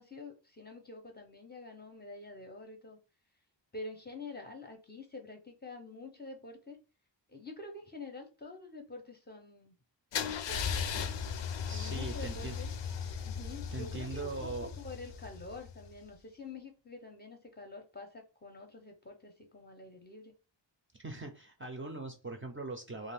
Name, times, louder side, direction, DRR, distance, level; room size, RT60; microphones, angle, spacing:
voice 1, 0.0-3.0 3.7-6.8 7.3-9.8 10.1-11.2 11.7-12.7 13.2-20.3, left 3 dB, 20° left, 0.6 m, -47 dB
Car / Engine starting / Idling, 10.1-16.0, left 6 dB, 70° left, 0.5 m, -37 dB
voice 2, 11.7-12.6 13.7-14.7 21.0-23.1, right 3 dB, 30° right, 0.4 m, -41 dB
2.5 x 2.4 x 3.3 m
wide cardioid pair, 145°, 45 cm